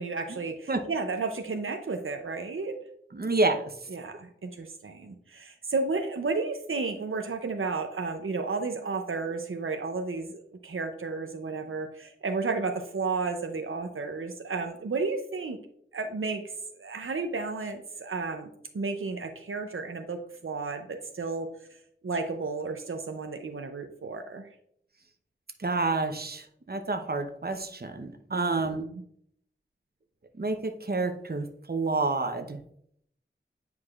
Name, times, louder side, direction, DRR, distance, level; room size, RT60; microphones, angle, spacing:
voice 1, 0.0-2.8 3.9-15.6 15.9-18.5 18.7-21.5 22.0-24.4 28.3-29.0, right 4 dB, 85° right, 5 dB, 0.6 m, -32 dB
voice 2, 3.1-3.6 25.6-28.9 30.4-32.6, right 3 dB, 50° right, 6 dB, 0.8 m, -29 dB
9.5 x 4.7 x 2.4 m, 0.68 s
wide cardioid pair, 50°, 21 cm